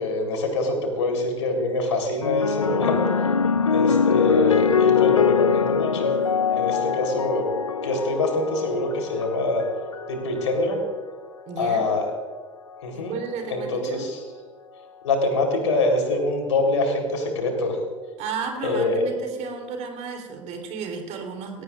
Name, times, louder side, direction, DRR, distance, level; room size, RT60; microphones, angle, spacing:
voice 1, 0.0-3.1 3.7-6.1 6.5-7.5 7.8-9.6 10.1-10.8 11.6-12.1 12.8-13.2 13.5-14.2 15.0-17.8 18.6-19.0, left 2 dB, 70° left, 3 dB, 3.8 m, -24 dB
sound 1, 2.2-10.8 11.7-12.1, left 6 dB, 85° left, 0.5 m, -23 dB
voice 2, 11.5-11.9 12.9-14.1 18.2-21.6, right 5 dB, 45° right, 3 dB, 3.5 m, -33 dB
21.5 x 18.0 x 2.5 m, 1.4 s
figure-of-eight pair, 80°, 16 cm